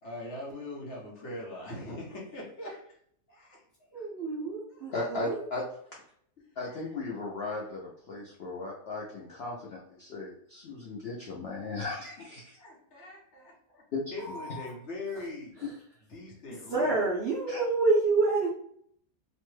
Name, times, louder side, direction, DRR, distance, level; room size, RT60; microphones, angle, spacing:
voice 1, 0.0-3.0 3.3-3.6 3.9-4.1 4.7-4.8 12.6-13.9 14.1-15.5 16.1-17.1, left 2 dB, 50° left, -3 dB, 1.0 m, -41 dB
voice 2, 3.9-5.4 14.2-14.7 16.7-18.5, right 3 dB, 85° right, -4 dB, 0.5 m, -28 dB
voice 3, 4.9-5.6 6.6-12.6 13.9-14.0 17.5-17.6, left 3 dB, 80° left, -3 dB, 0.5 m, -36 dB
2.9 x 2.1 x 3.1 m, 0.65 s
omnidirectional pair, 1.9 m